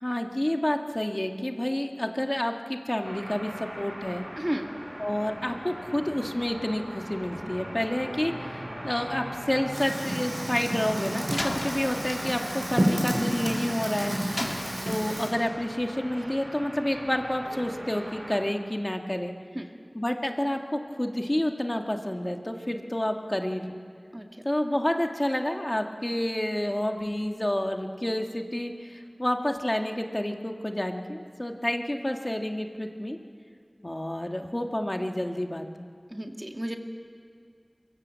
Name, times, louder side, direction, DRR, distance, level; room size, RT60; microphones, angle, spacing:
voice 1, 0.0-4.2 5.0-14.2 14.9-19.3 19.9-23.8 24.4-33.2 33.8-35.8, left 1 dB, 30° left, 3 dB, 1.8 m, -29 dB
sound 1, 3.0-18.4, equal, 45° right, 7.1 m, -40 dB
voice 2, 4.4-4.7 14.4-14.5 19.5-19.7 24.1-24.3 36.1-36.8, right 1 dB, 25° right, 3 dB, 2.1 m, -32 dB
Fire, 9.7-15.3, equal, 70° right, 5.6 m, -30 dB
Slam, 11.3-13.8 14.3-15.6, left 1 dB, 70° left, 2.0 m, -38 dB
24.0 x 23.5 x 7.5 m, 2.3 s
wide cardioid pair, 40°, 0 cm